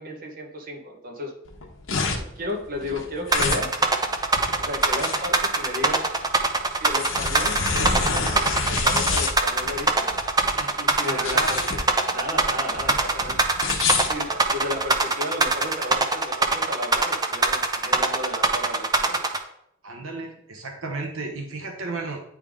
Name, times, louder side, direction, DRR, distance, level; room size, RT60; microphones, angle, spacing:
voice 1, 0.0-1.3 2.1-3.9 4.6-6.1 6.7-10.1 10.8-11.8 12.1-13.4 14.0-19.2, left 1 dB, 45° right, 2 dB, 1.2 m, -33 dB
sound 1, 1.5-15.0, left 4 dB, 65° left, 1.0 m, -28 dB
sound 2, 3.3-19.4, right 3 dB, 20° right, 0.5 m, -22 dB
voice 2, 10.6-11.8 19.8-22.2, right 3 dB, 80° right, 3 dB, 0.9 m, -34 dB
9.5 x 3.5 x 3.6 m, 0.74 s
head